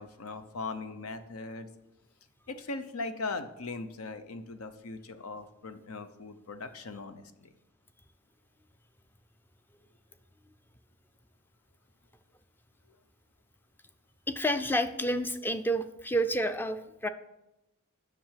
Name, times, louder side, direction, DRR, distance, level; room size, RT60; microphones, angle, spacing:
voice 1, 0.0-1.7 2.5-7.5, left 3 dB, 80° left, 10 dB, 0.8 m, -39 dB
voice 2, 14.3-17.1, right 1 dB, 10° left, 10 dB, 0.4 m, -29 dB
7.5 x 6.0 x 7.4 m, 0.93 s
head